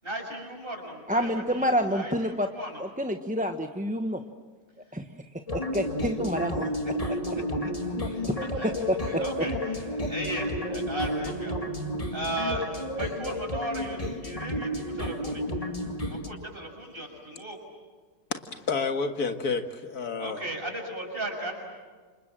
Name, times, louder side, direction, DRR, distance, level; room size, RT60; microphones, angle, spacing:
voice 1, 0.0-2.8 8.1-8.7 9.1-9.5 10.1-11.5 12.1-15.4 16.1-17.6 20.2-21.5, right 1 dB, 35° right, 2 dB, 6.7 m, -36 dB
voice 2, 1.1-2.5 2.8-4.2 4.9-6.7 8.2-8.3 8.6-9.5, equal, 5° right, 5 dB, 0.9 m, -28 dB
sound 1, 5.5-16.3, equal, 25° left, 2.1 m, -31 dB
voice 3, 18.3-20.4, left 4 dB, 85° left, 7 dB, 2.2 m, -30 dB
29.5 x 27.0 x 7.5 m, 1.5 s
omnidirectional pair, 1.6 m